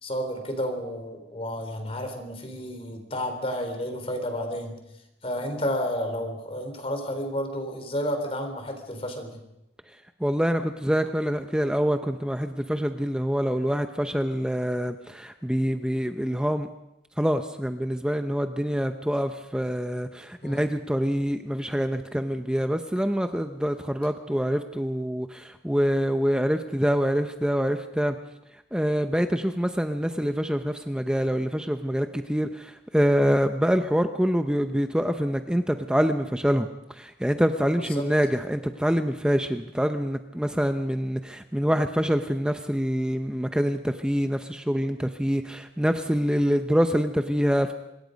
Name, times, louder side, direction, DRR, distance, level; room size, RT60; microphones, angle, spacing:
voice 1, 0.0-4.8 5.2-9.4 20.4-20.7 37.8-38.1, equal, 35° left, 6 dB, 3.8 m, -31 dB
voice 2, 10.2-16.7 17.2-28.2 28.7-47.7, equal, 5° right, 7 dB, 0.7 m, -25 dB
26.0 x 22.0 x 5.3 m, 0.88 s
head